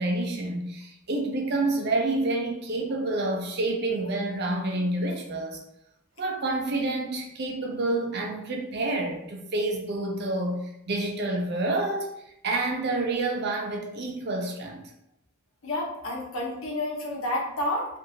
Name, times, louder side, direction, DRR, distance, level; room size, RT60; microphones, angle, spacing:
voice 1, 0.0-5.6 6.2-12.1 12.4-14.8, right 2 dB, 55° right, 1 dB, 0.6 m, -28 dB
voice 2, 15.6-17.9, left 1 dB, 80° left, -3 dB, 0.9 m, -30 dB
2.7 x 2.6 x 2.6 m, 0.80 s
head